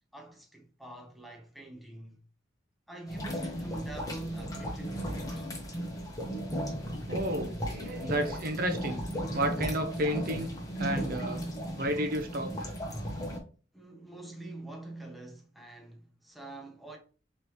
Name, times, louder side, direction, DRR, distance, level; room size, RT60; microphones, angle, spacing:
voice 1, 0.1-2.2 2.9-5.5 13.7-17.0, right 2 dB, ahead, 0.8 m, -44 dB
sound 1, 3.1-13.4, equal, 20° left, 1.1 m, -35 dB
voice 2, 7.1-9.0 9.3-10.5 10.8-11.4 11.8-12.7, right 1 dB, 55° right, 0.7 m, -32 dB
5.2 x 3.1 x 3.0 m
head